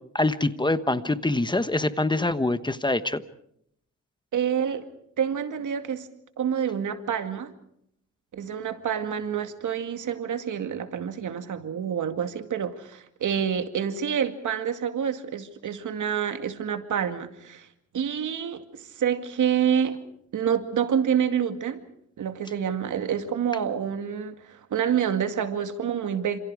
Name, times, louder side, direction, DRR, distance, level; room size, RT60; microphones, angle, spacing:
voice 1, 0.1-3.2, left 2 dB, 15° left, 12 dB, 1.1 m, -25 dB
voice 2, 4.3-4.9 5.2-6.1 6.4-7.5 8.3-17.7 17.9-20.0 20.3-21.8 22.2-26.4, right 8 dB, 80° right, 8 dB, 2.2 m, -27 dB
29.0 x 27.5 x 4.8 m, 0.71 s
wide cardioid pair, 125°, 30 cm